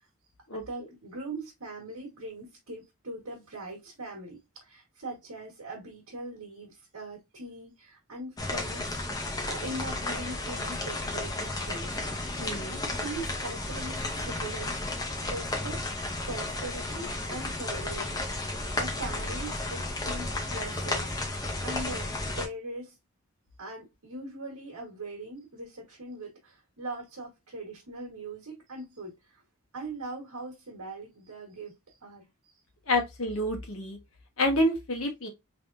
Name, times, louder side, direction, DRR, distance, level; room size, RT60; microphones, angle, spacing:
voice 1, 0.5-12.0 12.3-12.4 12.9-14.8 15.2-15.8 16.2-18.2 18.5-22.9 23.6-29.4 29.7-32.3, right 2 dB, 85° right, 1.5 m, -41 dB
sound 1, 8.4-22.5, left 2 dB, 15° left, 0.7 m, -33 dB
voice 2, 12.4-12.8 32.9-34.0 34.4-35.3, left 1 dB, 70° left, 1.3 m, -28 dB
3.5 x 3.4 x 2.6 m
head